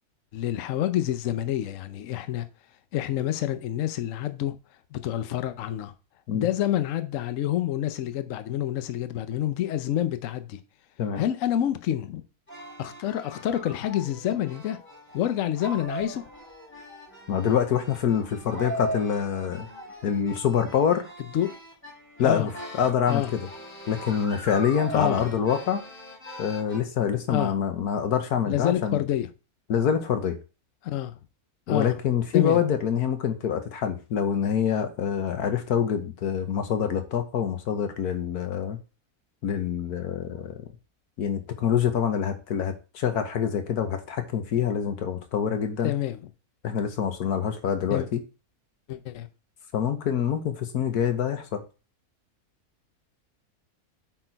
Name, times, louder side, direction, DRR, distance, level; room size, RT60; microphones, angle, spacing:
voice 1, 0.3-2.5 2.9-4.6 4.9-5.9 6.3-10.6 11.2-12.2 12.8-14.8 15.1-16.2 21.3-21.5 22.2-22.5 23.1-23.3 24.9-25.3 27.3-27.5 28.5-29.3 30.8-31.1 31.7-31.9 32.3-32.6 45.8-46.2 47.9-48.1 48.9-49.3, left 11 dB, 65° left, 1.0 m, -27 dB
sound 1, 12.5-26.8, right 1 dB, 5° left, 3.5 m, -40 dB
voice 2, 17.3-19.7 20.0-21.1 22.2-22.5 22.8-23.4 23.9-25.8 26.4-29.0 29.7-30.4 31.7-38.8 39.4-40.6 41.2-45.9 46.6-48.2 49.7-51.6, left 8 dB, 85° left, 1.5 m, -26 dB
7.9 x 4.5 x 4.5 m
omnidirectional pair, 1.6 m